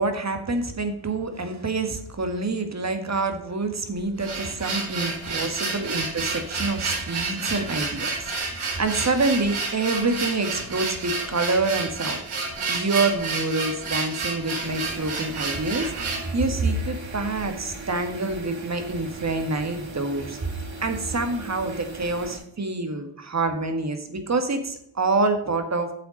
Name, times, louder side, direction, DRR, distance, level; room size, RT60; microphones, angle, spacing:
voice 1, 0.0-12.2 12.7-20.4 20.8-25.9, right 3 dB, 35° right, 7 dB, 1.8 m, -27 dB
sound 1, 3.9-16.3, right 4 dB, 85° right, 4.5 m, -30 dB
sound 2, 14.6-22.4, right 3 dB, 70° right, 4.2 m, -39 dB
8.5 x 7.0 x 5.2 m, 0.75 s
cardioid pair, 95°, 48 cm